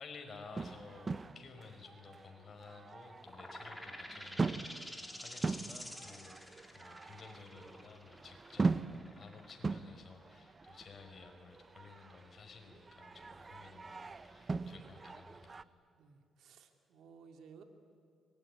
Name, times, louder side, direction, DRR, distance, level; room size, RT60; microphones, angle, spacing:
voice 1, 0.0-15.6, left 4 dB, 45° left, 4 dB, 4.9 m, -54 dB
Ambiente manifestacion feminista, 0.5-15.6, right 4 dB, 30° right, 0.8 m, -41 dB
sound 1, 3.2-10.6, equal, ahead, 3.2 m, -49 dB
voice 2, 15.9-17.6, right 6 dB, 75° right, 5 dB, 2.4 m, -57 dB
25.0 x 21.0 x 9.9 m, 2.4 s
cardioid pair, 95°, 0 cm